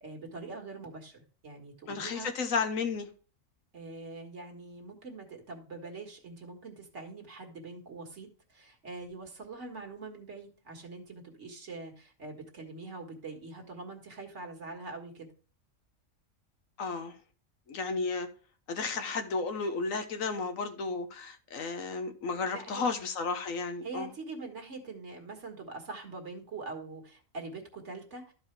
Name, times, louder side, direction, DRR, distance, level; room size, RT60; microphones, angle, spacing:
voice 1, 0.0-2.3 3.7-15.3 22.5-22.9 23.8-28.3, right 3 dB, 60° right, 1.9 m, -44 dB
voice 2, 1.9-3.1 16.8-17.1 17.7-18.3 18.7-24.1, left 4 dB, 80° left, 1.4 m, -33 dB
13.0 x 4.8 x 3.2 m
omnidirectional pair, 1.4 m